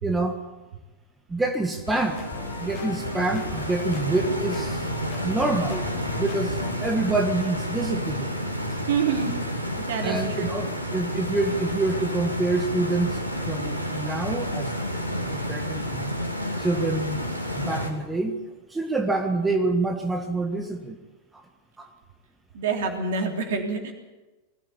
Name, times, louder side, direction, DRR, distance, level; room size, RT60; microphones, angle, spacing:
voice 1, 0.0-0.4 1.3-2.2 2.6-4.9 5.2-5.9 6.2-8.3 10.0-13.2 13.5-14.7 15.2-16.2 16.6-17.2 17.5-18.4 18.7-21.0 21.8-21.9, right 2 dB, 10° right, 4 dB, 1.7 m, -26 dB
sound 1, 1.7-6.9, left 6 dB, 35° left, 2.3 m, -39 dB
Stream, 1.9-17.9, equal, 85° left, 2.6 m, -30 dB
voice 2, 8.9-9.3 9.8-10.5 22.5-23.9, right 5 dB, 55° right, 3 dB, 3.3 m, -27 dB
21.0 x 15.0 x 8.5 m, 1.2 s
figure-of-eight pair, 90°, 0 cm